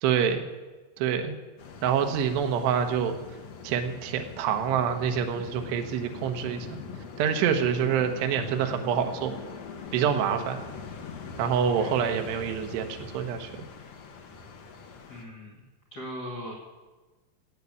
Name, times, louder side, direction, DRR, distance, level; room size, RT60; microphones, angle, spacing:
voice 1, 0.0-0.5 1.0-1.4 1.8-3.2 3.6-6.8 7.2-9.3 9.9-10.6 11.4-13.6, right 8 dB, 80° right, 5 dB, 3.1 m, -26 dB
sound 1, 1.6-15.2, left 5 dB, 65° left, 1.6 m, -42 dB
voice 2, 11.8-12.3 15.1-15.6 15.9-16.5, equal, 35° left, -2 dB, 1.7 m, -40 dB
15.5 x 8.5 x 8.3 m, 1.2 s
omnidirectional pair, 5.0 m